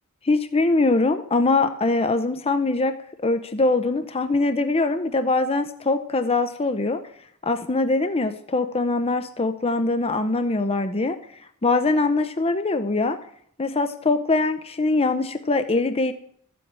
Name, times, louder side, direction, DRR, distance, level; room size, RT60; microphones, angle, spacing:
voice 1, 0.2-2.9 3.2-7.0 7.4-11.2 11.6-13.2 13.6-16.1, left 3 dB, 25° left, 9 dB, 0.7 m, -22 dB
13.5 x 7.8 x 8.8 m, 0.64 s
head